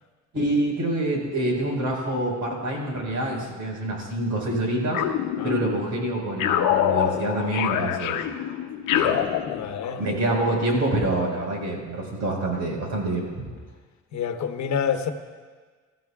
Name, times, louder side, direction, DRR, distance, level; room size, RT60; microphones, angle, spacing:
voice 1, 0.3-5.0 5.4-8.2 8.9-9.2 9.9-13.5, right 1 dB, 70° right, -1 dB, 4.8 m, -26 dB
sound 1, 4.9-5.9 6.4-10.0, left 10 dB, 90° left, 0.8 m, -25 dB
voice 2, 9.5-10.0 14.1-15.1, left 7 dB, 70° left, 8 dB, 1.0 m, -28 dB
24.5 x 14.0 x 2.4 m, 1.5 s
cardioid pair, 90°, 30 cm